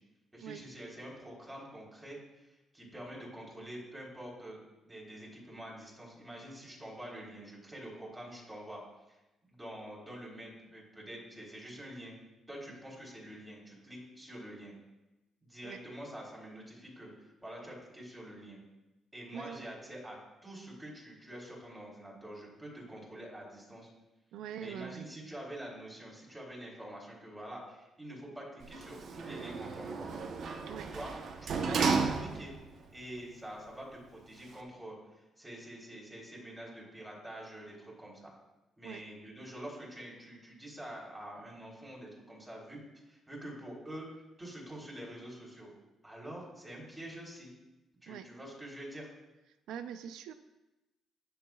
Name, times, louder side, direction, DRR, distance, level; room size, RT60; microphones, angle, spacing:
voice 1, 0.3-4.6 4.9-8.8 9.1-12.1 12.5-14.7 15.4-18.6 19.1-23.9 24.6-30.1 30.8-31.1 31.4-32.5 32.9-38.3 38.8-42.8 43.1-44.1 44.4-45.7 46.0-47.5 48.0-49.1, right 1 dB, 15° right, -4 dB, 3.8 m, -46 dB
voice 2, 19.3-19.7 24.3-25.1 30.7-30.9 31.6-31.8 38.8-39.0 48.1-48.3 49.7-50.3, right 9 dB, 90° right, 10 dB, 0.5 m, -43 dB
Sliding door, 28.6-32.7 33.2-33.3, right 5 dB, 60° right, 1.0 m, -34 dB
20.0 x 6.9 x 2.4 m, 1.0 s
cardioid pair, 90°, 0 cm